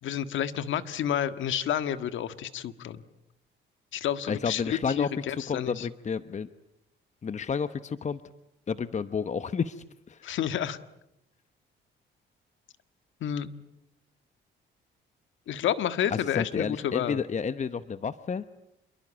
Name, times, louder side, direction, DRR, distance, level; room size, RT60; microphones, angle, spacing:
voice 1, 0.0-3.0 3.9-5.9 10.2-10.8 13.2-13.5 15.5-17.2, left 10 dB, 75° left, 12 dB, 1.6 m, -30 dB
voice 2, 4.3-6.5 7.2-8.2 8.7-10.3 16.1-18.4, left 6 dB, 35° left, 12 dB, 1.0 m, -31 dB
28.0 x 23.0 x 8.9 m, 0.83 s
cardioid pair, 90°, 20 cm